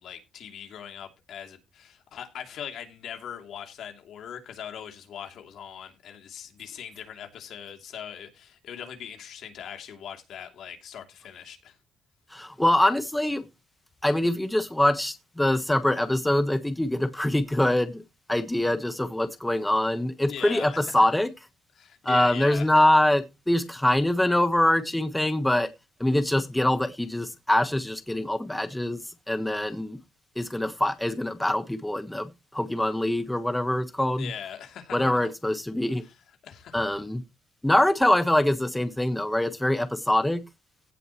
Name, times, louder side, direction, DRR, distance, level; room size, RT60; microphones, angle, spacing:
voice 1, 0.0-11.7 20.3-20.8 21.8-22.7 34.2-35.3 36.0-36.1 36.4-36.9, left 8 dB, 75° left, 2.8 m, -40 dB
voice 2, 12.3-13.4 14.0-18.0 18.3-21.3 22.0-25.7 26.0-29.0 29.3-30.0 30.4-34.3 34.9-36.0 36.7-37.2 37.6-40.4, left 1 dB, 10° left, 1.2 m, -24 dB
16.5 x 7.8 x 3.0 m
cardioid pair, 90°, 0 cm